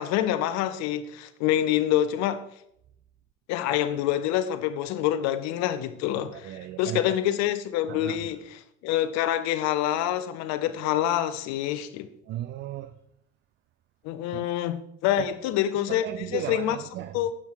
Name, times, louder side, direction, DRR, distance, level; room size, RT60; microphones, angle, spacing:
voice 1, 0.0-2.4 3.5-12.1 14.0-16.8 17.1-17.3, left 12 dB, 45° left, 1.0 m, -26 dB
voice 2, 6.3-7.2 7.9-8.3 12.3-12.9 14.3-14.5 15.9-17.3, right 13 dB, 30° right, 0.5 m, -36 dB
12.5 x 8.3 x 4.5 m
figure-of-eight pair, 70°, 37 cm